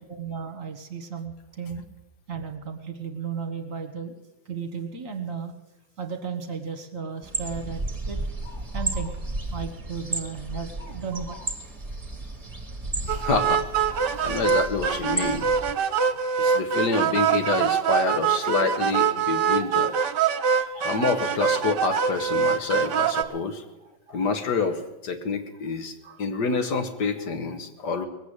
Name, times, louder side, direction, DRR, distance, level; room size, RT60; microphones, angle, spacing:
voice 1, 0.1-1.8 2.3-4.1 4.4-5.5 6.0-8.2 8.7-9.1 9.5-11.4 17.9-18.0 18.3-18.5 19.2-19.3 19.6-21.0 23.8-24.3 26.0-26.6, right 6 dB, 45° right, 5 dB, 1.7 m, -35 dB
sound 1, 7.2-15.7, right 2 dB, 20° right, 1.6 m, -33 dB
voice 2, 13.0-15.5 16.4-20.0 20.8-23.6 24.1-28.0, left 4 dB, 60° left, 7 dB, 1.7 m, -27 dB
sound 2, 13.1-23.2, right 7 dB, 65° right, 1.4 m, -24 dB
20.5 x 8.2 x 8.1 m, 0.99 s
omnidirectional pair, 2.1 m